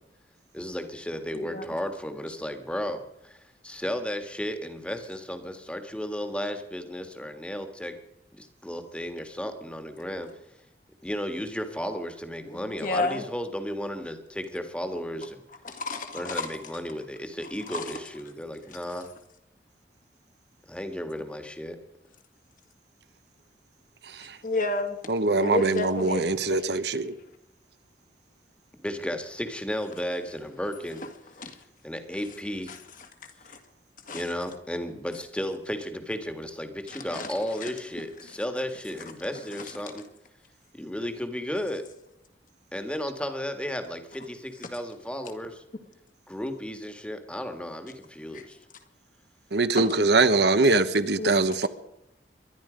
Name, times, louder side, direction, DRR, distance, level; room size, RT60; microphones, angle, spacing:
voice 1, 0.5-7.9 8.3-10.3 11.0-15.4 16.1-19.1 20.7-21.8 28.7-31.0 31.8-32.7 34.1-40.0 40.7-41.8 42.7-45.6 46.3-48.6, equal, 5° left, 1.6 m, -34 dB
voice 2, 1.3-1.7 12.5-13.2 15.6-16.5 17.7-17.9 24.4-25.0 25.4-26.6 31.4-31.5 32.7-32.8 33.4-33.6 34.1-34.2 36.9-37.3 37.6-37.7 48.3-48.4 49.7-50.0 51.2-51.3, left 2 dB, 50° left, 2.0 m, -31 dB
voice 3, 25.1-27.1 49.5-51.7, right 3 dB, 70° right, 1.0 m, -23 dB
23.0 x 11.0 x 5.1 m
head